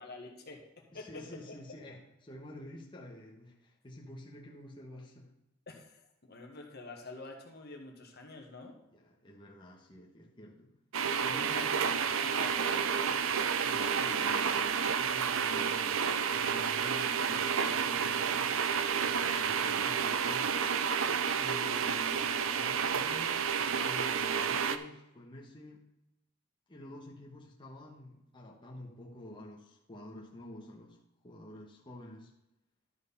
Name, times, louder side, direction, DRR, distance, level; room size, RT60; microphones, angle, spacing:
voice 1, 0.0-1.6 5.7-8.7 11.3-12.9 19.3-19.5 21.8-21.9, left 3 dB, 55° left, 2 dB, 1.6 m, -47 dB
voice 2, 0.9-5.3 8.9-10.7 11.1-12.0 13.6-18.5 19.0-20.6 21.4-25.8 26.7-32.3, left 1 dB, 25° left, -3 dB, 1.3 m, -48 dB
sound 1, 10.9-24.8, right 7 dB, 90° right, 0.6 m, -30 dB
12.0 x 4.6 x 5.5 m, 0.88 s
head